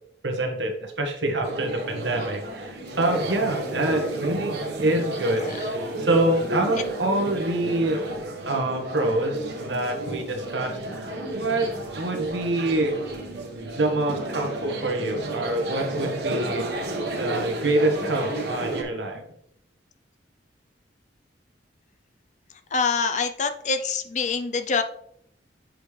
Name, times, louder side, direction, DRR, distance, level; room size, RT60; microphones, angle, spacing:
voice 1, 0.2-8.0 8.4-11.7 12.0-13.0 13.8-16.9 17.2-19.2, right 2 dB, 85° right, 3 dB, 1.4 m, -26 dB
sound 1, 1.4-18.8, right 1 dB, 65° right, 1.3 m, -32 dB
voice 2, 22.7-24.8, left 5 dB, 40° left, 8 dB, 0.5 m, -25 dB
7.8 x 5.1 x 3.2 m, 0.69 s
head